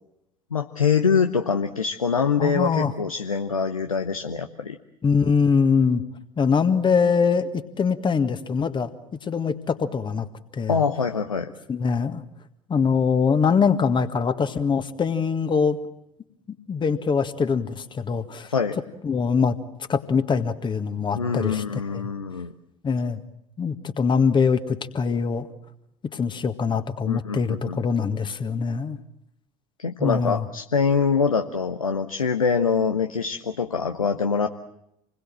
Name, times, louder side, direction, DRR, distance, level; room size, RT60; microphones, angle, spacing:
voice 1, 0.5-4.8 10.7-11.5 18.5-18.8 21.2-22.5 27.1-27.8 29.8-34.5, left 5 dB, 80° left, 7 dB, 1.0 m, -24 dB
voice 2, 2.4-2.9 5.0-6.0 6.4-8.9 9.2-10.3 10.5-10.8 11.7-12.2 12.7-15.8 16.7-18.5 19.0-19.6 19.9-21.6 21.9-22.1 22.8-23.2 23.6-25.5 26.1-29.0 30.0-30.5, left 5 dB, 25° left, 9 dB, 1.8 m, -23 dB
28.0 x 21.0 x 7.6 m, 0.82 s
figure-of-eight pair, 65°, 18 cm